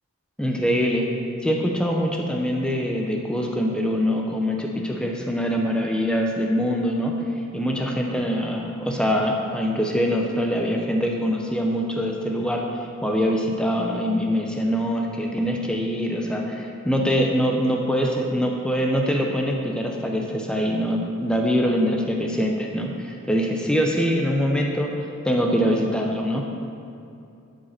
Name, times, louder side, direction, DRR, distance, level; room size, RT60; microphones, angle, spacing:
voice 1, 0.4-1.1 1.4-7.2 7.5-26.5, equal, 5° left, 0 dB, 0.6 m, -24 dB
12.5 x 5.2 x 5.8 m, 2.6 s
head